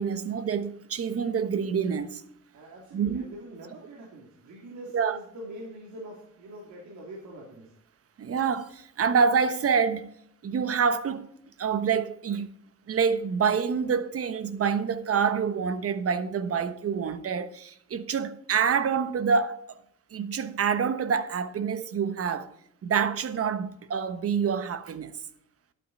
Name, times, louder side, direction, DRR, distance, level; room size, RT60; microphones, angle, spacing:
voice 1, 0.0-2.2 2.9-3.2 4.9-5.2 8.2-10.1 10.4-11.3 11.6-12.5 12.9-19.8 20.1-22.5 22.8-25.2, right 6 dB, 50° right, 1.2 m, -27 dB
voice 2, 2.5-7.7, right 1 dB, 70° right, 3.1 m, -44 dB
11.5 x 9.1 x 4.2 m
cardioid pair, 90°, 30 cm